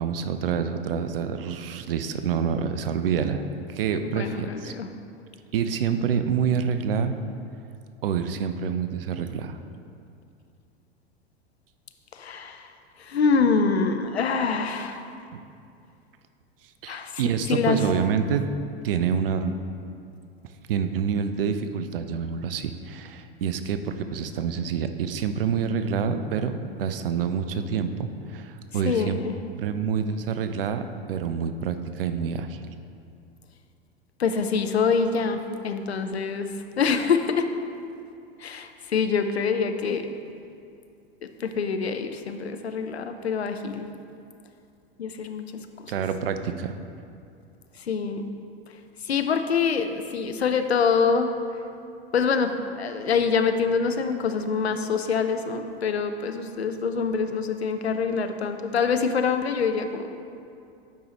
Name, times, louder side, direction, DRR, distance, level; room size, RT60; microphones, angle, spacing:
voice 1, 0.0-3.4 3.7-4.7 5.5-7.2 8.0-9.6 16.8-18.5 18.8-19.6 20.4-29.2 29.6-30.8 31.1-32.6 45.9-46.8, right 7 dB, 65° right, 9 dB, 0.5 m, -27 dB
voice 2, 4.0-4.9 12.1-12.7 13.0-15.0 16.9-17.2 17.5-17.8 28.8-29.4 34.2-36.5 36.8-37.5 38.4-40.1 41.4-43.9 45.0-45.5 45.8-45.9 47.8-48.4 49.0-51.3 52.1-60.2, left 5 dB, 80° left, 8 dB, 0.5 m, -25 dB
8.5 x 5.4 x 2.9 m, 2.5 s
figure-of-eight pair, 90°, 31 cm